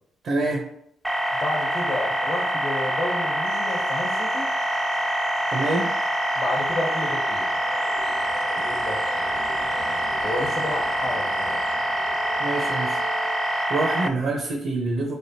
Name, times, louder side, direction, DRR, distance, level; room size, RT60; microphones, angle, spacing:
voice 1, 0.2-0.7 5.5-5.9 12.4-13.0 13.7-15.2, right 2 dB, 65° right, 1 dB, 0.6 m, -26 dB
sound 1, 1.0-14.1, equal, 5° right, 0.3 m, -25 dB
voice 2, 1.3-4.5 6.3-7.5 8.6-9.0 10.2-11.6, left 2 dB, 60° left, 1 dB, 1.1 m, -31 dB
sound 2, 3.4-13.7, right 2 dB, 90° right, 1.5 m, -41 dB
3.8 x 3.4 x 2.7 m, 0.71 s
cardioid pair, 80°, 0 cm